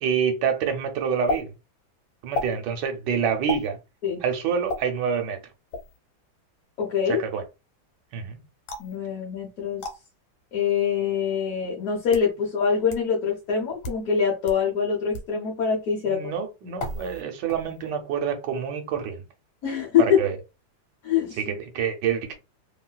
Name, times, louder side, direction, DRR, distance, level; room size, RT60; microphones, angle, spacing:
voice 1, 0.0-1.5 2.2-3.8 4.2-5.4 7.1-7.4 8.1-8.4 16.1-19.2 20.2-20.3 21.4-22.4, right 7 dB, 70° right, 1.2 m, -27 dB
sound 1, 1.3-1.4 2.3-2.5 3.5-3.7 4.7-4.8 5.7-6.0 8.7-9.0 9.8-10.0 10.9-11.0 11.8-12.3 12.9-13.0 13.7-14.0 14.5-14.6 15.1-15.3 16.8-17.2 17.5-17.9, left 2 dB, 80° left, 1.5 m, -32 dB
voice 2, 6.8-7.2 8.8-9.8 10.5-16.3 19.6-20.2 21.0-21.4, left 7 dB, 60° left, 1.1 m, -24 dB
3.0 x 2.7 x 2.2 m
omnidirectional pair, 2.1 m